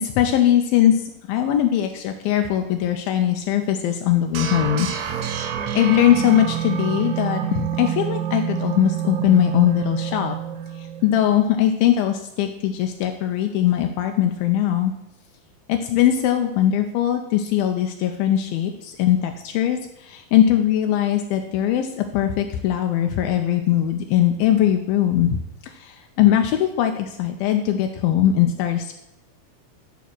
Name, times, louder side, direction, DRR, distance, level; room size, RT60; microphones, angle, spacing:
voice 1, 0.0-5.4 5.7-10.4 10.8-14.9 15.7-28.9, left 11 dB, 85° left, 5 dB, 2.3 m, -20 dB
sound 1, 4.3-11.3, right 9 dB, 80° right, 1.6 m, -27 dB
11.0 x 4.1 x 5.9 m, 0.84 s
omnidirectional pair, 4.4 m